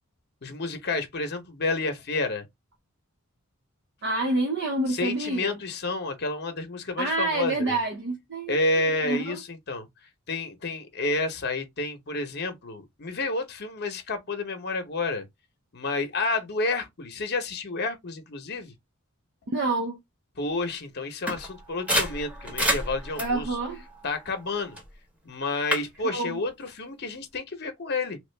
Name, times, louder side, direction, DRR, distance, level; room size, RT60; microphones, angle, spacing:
voice 1, 0.4-2.4 4.9-7.8 8.5-9.9 10.3-15.2 15.7-18.7 20.4-23.6 24.0-24.8 25.2-28.2, left 3 dB, 50° left, 0.9 m, -30 dB
voice 2, 4.0-5.6 7.0-9.4 19.5-20.0 23.2-23.8 26.1-26.4, right 2 dB, 55° right, 0.6 m, -28 dB
sound 1, 21.3-24.9 25.3-25.8, equal, 5° right, 0.9 m, -30 dB
3.1 x 2.4 x 3.3 m
head